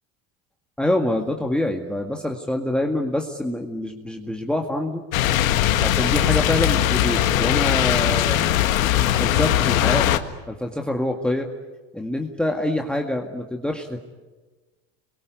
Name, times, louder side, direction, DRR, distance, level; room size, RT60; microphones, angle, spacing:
voice 1, 0.8-5.0 5.8-8.4 9.2-10.1 10.5-11.5 11.9-14.0, left 1 dB, ahead, 3 dB, 2.0 m, -25 dB
sound 1, 5.1-10.2, left 12 dB, 90° left, 1.7 m, -20 dB
27.0 x 22.5 x 9.5 m, 1.2 s
supercardioid pair, 100°, 40 cm